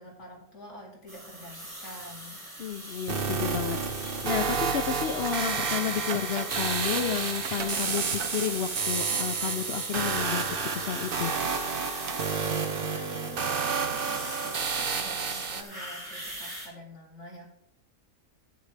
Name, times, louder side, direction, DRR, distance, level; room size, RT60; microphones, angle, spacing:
voice 1, 0.0-2.4 12.8-17.5, left 1 dB, 50° left, -2 dB, 2.5 m, -46 dB
sound 1, 1.1-16.7, right 1 dB, 15° right, 3.7 m, -41 dB
voice 2, 2.6-11.3, left 8 dB, 70° left, 8 dB, 0.6 m, -31 dB
sound 2, 3.1-15.6, right 5 dB, 45° right, 0.9 m, -30 dB
sound 3, 3.6-11.6 12.1-13.0, right 7 dB, 90° right, 1.4 m, -42 dB
12.0 x 9.3 x 3.3 m, 0.77 s
omnidirectional pair, 1.6 m